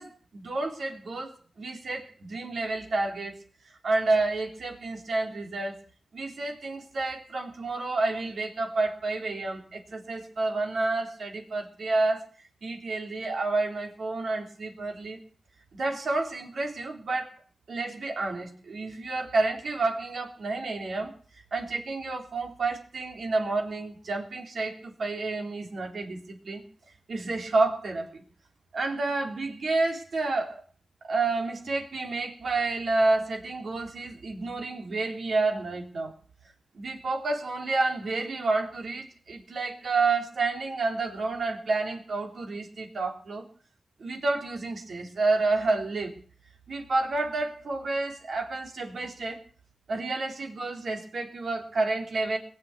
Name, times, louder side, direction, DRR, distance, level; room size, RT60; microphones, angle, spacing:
voice 1, 0.0-3.4 3.8-5.8 6.1-12.2 12.6-15.2 15.7-17.4 17.7-21.1 21.5-26.6 27.1-28.2 28.7-30.6 31.1-36.1 36.8-43.4 44.0-46.1 46.7-49.4 49.9-52.4, right 3 dB, 70° right, 2 dB, 3.7 m, -29 dB
21.0 x 7.9 x 8.5 m, 0.43 s
wide cardioid pair, 115°, 0 cm